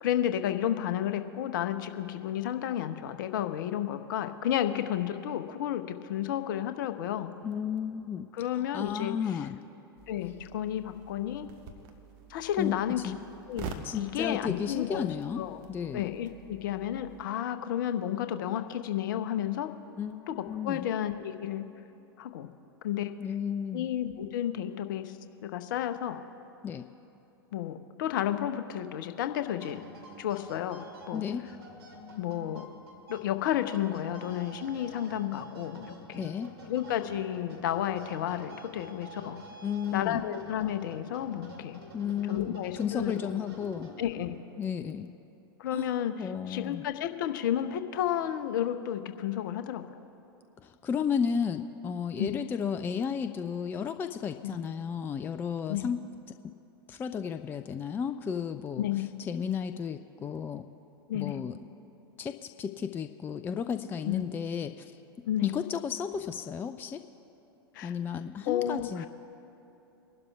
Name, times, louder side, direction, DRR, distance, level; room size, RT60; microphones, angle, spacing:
voice 1, 0.0-7.3 8.3-9.4 10.1-11.5 12.3-13.2 13.5-15.1 15.4-15.6 15.9-19.7 20.3-20.4 20.6-21.6 22.2-22.5 22.8-23.1 23.7-25.2 25.4-26.2 27.5-29.8 30.2-31.2 32.2-32.7 33.1-36.3 36.7-39.4 39.9-41.8 42.3-43.4 44.0-44.4 45.6-50.0 52.2-52.3 54.4-54.6 55.7-55.9 58.8-59.1 61.1-61.4 64.0-64.2 65.3-65.5 67.7-68.0 68.5-69.1, left 11 dB, 55° left, 9 dB, 0.8 m, -32 dB
voice 2, 7.4-9.6 12.6-12.8 13.0-13.2 13.8-15.4 15.7-16.1 20.0-20.9 23.2-23.9 26.6-26.9 31.1-31.5 36.2-36.5 39.6-40.2 41.9-43.9 44.6-45.1 45.7-45.9 46.2-46.8 50.6-56.0 56.9-58.8 59.3-60.6 61.1-61.6 62.2-64.9 65.4-67.0 67.8-69.1, left 7 dB, 15° left, 9 dB, 0.3 m, -33 dB
sound 1, 10.0-17.3, right 5 dB, 40° right, 1.2 m, -47 dB
sound 2, 29.4-44.3, right 1 dB, 75° right, 2.4 m, -49 dB
24.0 x 12.0 x 2.4 m, 2.9 s
figure-of-eight pair, 95°, 13 cm